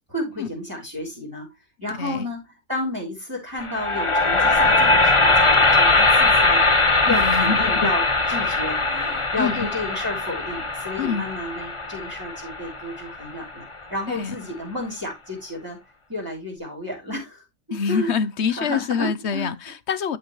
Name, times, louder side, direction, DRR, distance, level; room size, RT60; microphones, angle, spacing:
voice 1, 0.1-1.5 1.8-13.6 13.9-15.8 16.1-17.4 17.9-18.1 18.6-19.5, left 1 dB, 10° right, 3.7 m, -31 dB
sound 1, 3.6-13.7, left 2 dB, 25° left, 0.9 m, -20 dB
voice 2, 7.1-7.9 9.4-9.7 11.0-11.3 14.1-14.3 17.7-20.2, left 6 dB, 50° left, 0.9 m, -26 dB
12.0 x 6.0 x 3.2 m
omnidirectional pair, 1.7 m